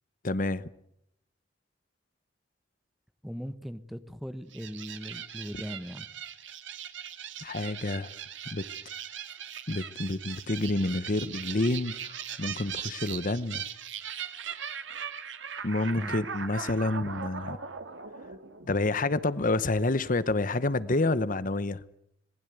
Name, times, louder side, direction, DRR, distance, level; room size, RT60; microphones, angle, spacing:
voice 1, 0.2-0.7 7.4-8.1 8.5-8.7 9.7-13.6 15.6-17.6 18.6-21.8, left 2 dB, 45° left, 16 dB, 1.0 m, -28 dB
voice 2, 3.2-6.1 16.0-16.2, equal, ahead, 11 dB, 1.3 m, -39 dB
sound 1, 4.5-19.2, right 8 dB, 80° right, 2.4 m, -40 dB
26.5 x 19.5 x 9.4 m, 0.77 s
head